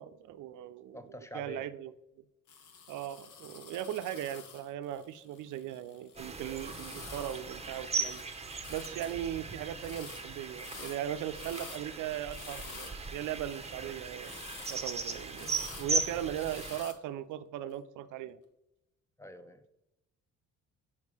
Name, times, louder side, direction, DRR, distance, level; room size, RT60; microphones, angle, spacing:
voice 1, 0.0-1.9 2.9-8.3 8.7-14.3 14.7-18.4, right 11 dB, 80° right, 13 dB, 0.5 m, -38 dB
voice 2, 0.9-1.7 19.2-19.6, equal, 10° left, 10 dB, 0.5 m, -45 dB
sound 1, 2.5-8.2 8.5-9.2 9.8-10.2 10.5-11.8 12.3-13.1 14.2-14.9 15.3-16.0 16.3-16.9, left 6 dB, 75° left, 1.0 m, -49 dB
sound 2, 6.2-16.8, right 3 dB, 20° right, 0.8 m, -38 dB
5.4 x 4.9 x 4.7 m, 0.90 s
cardioid pair, 90°, 30 cm